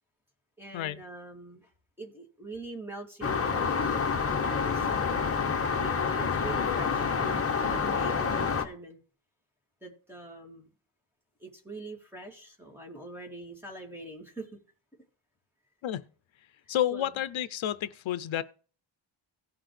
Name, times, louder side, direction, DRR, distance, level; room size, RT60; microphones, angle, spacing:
voice 1, 0.6-1.7 2.0-3.7 4.2-5.0 5.7-9.0 9.8-10.7 11.4-14.6 16.9-17.1, right 2 dB, 5° right, 2.5 m, -44 dB
sound 1, 3.2-8.6, left 5 dB, 30° left, 1.1 m, -28 dB
voice 2, 16.7-18.4, left 11 dB, 80° left, 0.6 m, -30 dB
17.0 x 5.9 x 3.2 m
wide cardioid pair, 175°, 46 cm